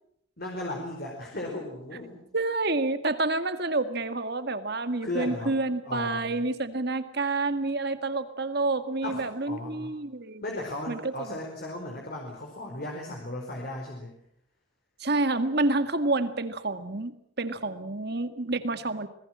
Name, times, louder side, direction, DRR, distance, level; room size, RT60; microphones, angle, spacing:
voice 1, 0.4-2.2 5.0-5.5 5.8-6.2 9.0-9.9 10.4-14.1, left 1 dB, 45° left, 0 dB, 4.6 m, -36 dB
voice 2, 2.3-10.4 10.9-11.1 15.0-19.1, right 2 dB, 50° right, 10 dB, 1.9 m, -28 dB
27.0 x 20.0 x 7.6 m, 0.71 s
head